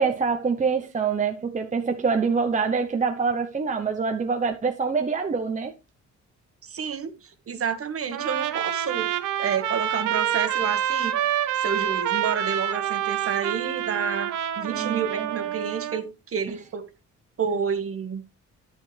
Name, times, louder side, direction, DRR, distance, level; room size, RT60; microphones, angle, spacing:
voice 1, 0.0-5.7 14.7-15.3, right 5 dB, 25° right, 0.8 m, -25 dB
voice 2, 6.6-9.1 9.4-11.1 11.5-16.8 17.4-18.2, right 6 dB, 50° right, 1.5 m, -30 dB
Trumpet, 8.1-16.0, right 11 dB, 90° right, 1.0 m, -27 dB
11.0 x 7.6 x 3.3 m
cardioid pair, 90°, 30 cm